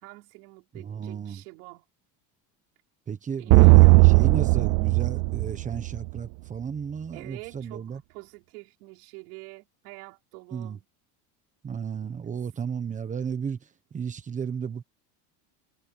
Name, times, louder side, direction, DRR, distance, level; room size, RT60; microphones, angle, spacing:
voice 1, 0.0-1.8 3.4-4.0 7.1-10.9 12.2-12.3, right 25 dB, 80° right, 5.4 m, -46 dB
voice 2, 0.7-1.4 3.1-8.0 10.5-10.8 11.6-14.8, right 7 dB, 15° right, 1.2 m, -34 dB
sound 1, 3.5-6.2, right 25 dB, 45° right, 0.4 m, -17 dB
cardioid pair, 175°, 45 cm